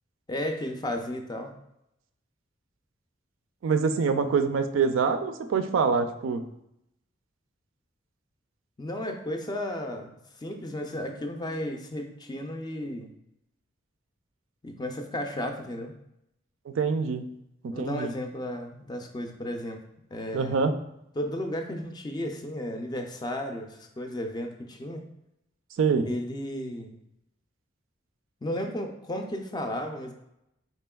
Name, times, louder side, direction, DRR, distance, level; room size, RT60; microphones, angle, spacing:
voice 1, 0.3-1.5 8.8-13.1 14.6-15.9 17.7-19.8 20.1-20.6 21.2-25.0 26.0-27.0 28.4-30.1, left 1 dB, 20° left, 4 dB, 0.4 m, -34 dB
voice 2, 3.6-6.4 16.7-17.2 17.6-18.1 20.3-20.7 25.8-26.1, right 5 dB, 75° right, 8 dB, 0.4 m, -25 dB
4.2 x 3.6 x 2.3 m, 0.81 s
head